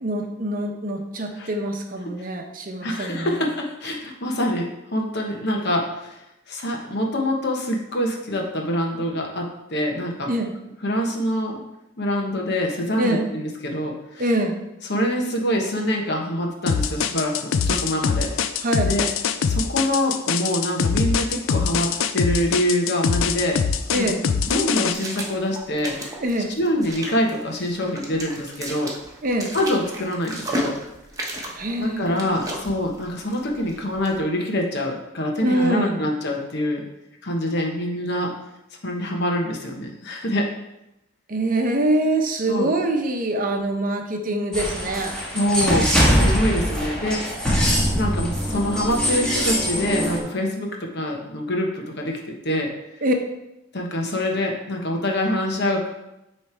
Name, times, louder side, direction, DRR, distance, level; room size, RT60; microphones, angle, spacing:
voice 1, 0.0-3.4 10.3-10.5 13.0-13.3 14.2-14.6 18.6-18.9 23.9-24.2 26.2-26.6 29.2-29.6 31.5-32.4 35.4-36.1 41.3-45.1 53.0-53.1, right 1 dB, 45° right, 4 dB, 0.8 m, -24 dB
voice 2, 2.8-6.2 6.5-10.3 10.8-11.6 12.0-14.2 14.9-18.3 18.8-19.1 19.5-23.6 24.0-24.1 24.4-26.1 26.6-28.9 29.5-30.7 31.4-31.5 31.8-36.8 37.2-38.3 38.8-40.5 42.5-42.7 45.3-47.2 47.9-52.7 53.7-55.9, left 1 dB, 55° left, 1 dB, 1.1 m, -25 dB
sound 1, 16.7-24.9, left 6 dB, 75° left, 0.4 m, -23 dB
sound 2, 23.2-34.2, right 1 dB, 15° right, 1.1 m, -36 dB
sound 3, 44.5-50.2, equal, 5° left, 1.4 m, -22 dB
9.2 x 3.3 x 4.5 m, 0.91 s
head